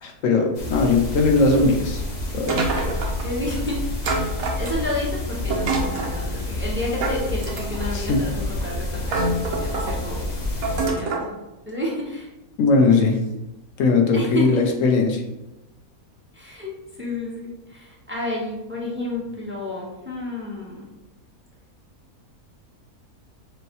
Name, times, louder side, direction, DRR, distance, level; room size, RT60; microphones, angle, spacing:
voice 1, 0.0-2.0 2.3-2.6 7.9-8.2 12.6-13.2 13.8-15.2, left 3 dB, 65° left, 3 dB, 0.9 m, -19 dB
sound 1, 0.5-10.9, left 2 dB, 40° left, 0.6 m, -29 dB
sound 2, 2.5-3.3 4.0-5.0 5.5-6.2 7.0-7.9 8.6-8.7 9.1-10.0 10.6-11.3, right 3 dB, 70° right, 1.1 m, -26 dB
voice 2, 2.8-11.4 11.7-12.3 14.1-14.6 16.3-16.7 17.0-20.9, left 1 dB, 15° right, -4 dB, 0.4 m, -31 dB
6.2 x 2.2 x 2.8 m, 0.98 s
omnidirectional pair, 1.6 m